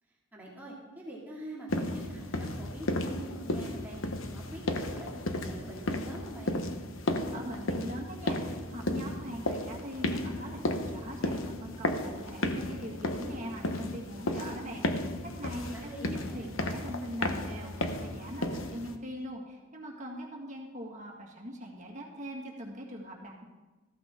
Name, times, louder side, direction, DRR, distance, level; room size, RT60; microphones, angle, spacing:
voice 1, 0.3-4.0 4.3-6.6 15.6-16.6, right 1 dB, 10° right, -5 dB, 2.5 m, -44 dB
sound 1, 1.7-19.0, left 1 dB, 80° left, 1.1 m, -34 dB
voice 2, 7.3-15.0 15.3-23.4, equal, 35° right, 0 dB, 2.1 m, -42 dB
14.5 x 14.0 x 3.8 m, 1.2 s
head